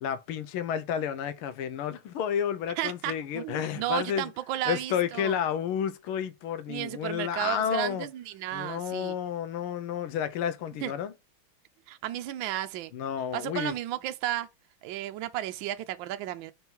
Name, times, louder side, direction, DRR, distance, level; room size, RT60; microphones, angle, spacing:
voice 1, 0.0-4.3 4.7-8.1 8.5-11.1 12.9-13.7, left 9 dB, 90° left, 1.6 m, -31 dB
voice 2, 2.8-5.4 6.7-9.2 10.8-10.9 11.9-12.9 13.3-14.5 14.8-16.5, right 13 dB, 75° right, 1.3 m, -33 dB
5.3 x 4.5 x 4.5 m
omnidirectional pair, 2.3 m